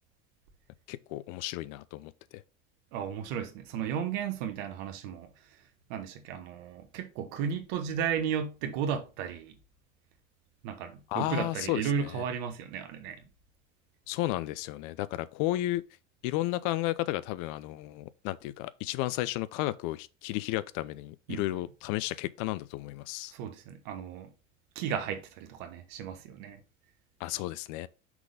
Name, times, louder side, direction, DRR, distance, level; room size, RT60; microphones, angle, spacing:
voice 1, 0.9-2.4 11.1-12.2 14.1-15.8 16.2-23.3 27.2-27.9, left 16 dB, 55° left, 0.5 m, -33 dB
voice 2, 2.9-5.3 5.9-9.6 10.6-13.2 21.3-21.6 23.3-24.3 24.7-26.6, right 8 dB, 60° right, 1.4 m, -34 dB
6.0 x 3.8 x 5.0 m
hypercardioid pair, 80°, 38 cm